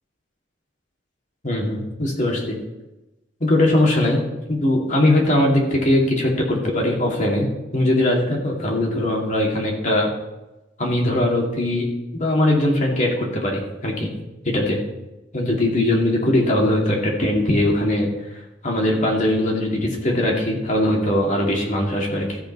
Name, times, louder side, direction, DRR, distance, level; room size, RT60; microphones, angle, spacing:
voice 1, 1.4-2.6 3.4-4.2 4.5-7.5 7.7-10.1 10.8-11.9 12.1-14.1 14.4-14.8 15.3-18.1 18.6-22.4, left 1 dB, 40° left, -1 dB, 2.3 m, -20 dB
14.0 x 5.3 x 5.4 m, 1.0 s
head